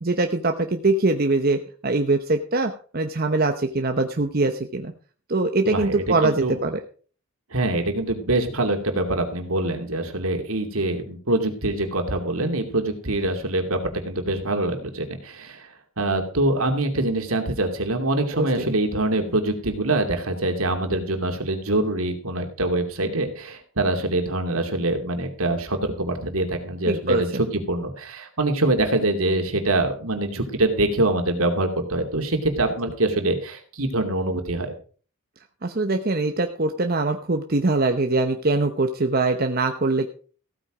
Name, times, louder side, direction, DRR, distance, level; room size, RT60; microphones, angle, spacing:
voice 1, 0.0-4.9 5.3-6.8 18.3-18.7 26.8-27.2 35.6-40.1, right 2 dB, 45° right, 6 dB, 0.9 m, -23 dB
voice 2, 5.6-6.6 7.5-13.8 14.0-34.7, right 2 dB, 70° right, 5 dB, 2.6 m, -24 dB
15.5 x 9.0 x 4.9 m, 0.41 s
head